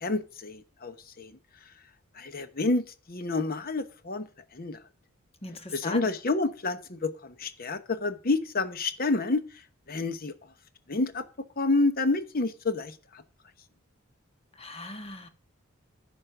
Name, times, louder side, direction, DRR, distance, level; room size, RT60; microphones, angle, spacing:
voice 1, 0.0-1.4 2.2-4.3 4.5-4.8 5.7-9.4 9.9-10.3 10.9-11.2 11.6-12.9, left 3 dB, 45° left, 1.0 m, -29 dB
voice 2, 5.4-6.1 14.6-15.3, left 2 dB, 30° left, 1.3 m, -38 dB
10.5 x 6.4 x 6.6 m
head